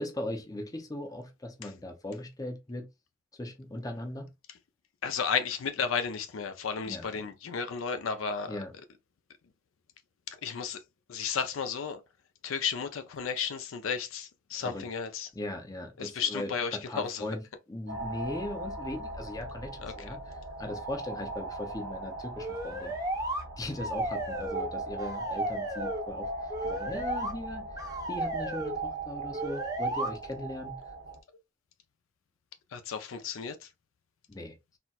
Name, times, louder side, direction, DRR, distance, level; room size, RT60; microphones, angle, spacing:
voice 1, 0.0-2.9 3.3-4.3 6.9-7.0 8.5-8.7 14.6-14.8 15.4-17.4 17.7-20.2 20.6-22.9 23.6-27.7 28.1-30.8 34.3-34.5, left 1 dB, 20° left, 0.5 m, -38 dB
voice 2, 5.0-8.6 10.3-10.8 11.1-12.0 12.4-15.3 16.0-17.3 19.8-20.2 32.7-33.7, left 6 dB, 85° left, 0.5 m, -33 dB
sound 1, 17.9-31.2, right 2 dB, 80° right, 0.9 m, -39 dB
sound 2, 22.4-23.4 23.8-24.7 25.0-26.0 26.5-27.3 27.8-28.8 29.3-30.1, right 1 dB, 20° right, 0.7 m, -34 dB
4.1 x 2.1 x 2.2 m
head